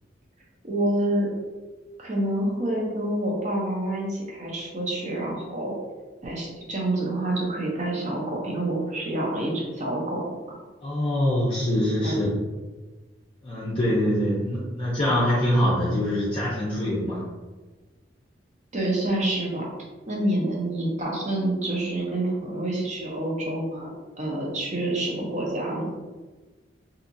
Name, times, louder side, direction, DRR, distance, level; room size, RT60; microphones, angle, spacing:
voice 1, 0.6-1.3 2.0-5.7 6.2-10.6 12.0-12.2 18.7-19.7 20.1-25.9, right 1 dB, 40° right, -3 dB, 0.6 m, -27 dB
voice 2, 10.8-12.3 13.4-17.2, left 1 dB, 30° left, -8 dB, 0.5 m, -24 dB
2.7 x 2.4 x 2.5 m, 1.2 s
head